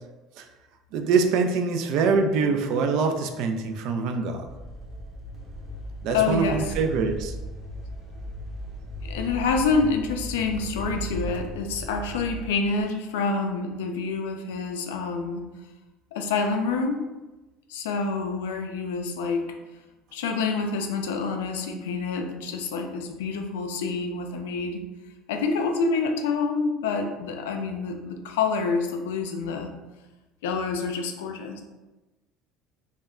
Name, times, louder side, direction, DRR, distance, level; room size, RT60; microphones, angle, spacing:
voice 1, 0.9-4.5 6.0-7.3, right 4 dB, 70° right, 5 dB, 0.3 m, -24 dB
sound 1, 4.5-12.8, equal, 40° right, 0.8 m, -37 dB
voice 2, 6.1-6.7 9.1-15.4 16.1-17.1 17.7-19.5 20.1-24.8 25.3-29.7 30.4-31.6, left 4 dB, 85° left, 4 dB, 0.3 m, -27 dB
2.1 x 2.1 x 3.5 m, 1.1 s
supercardioid pair, 90°, 0 cm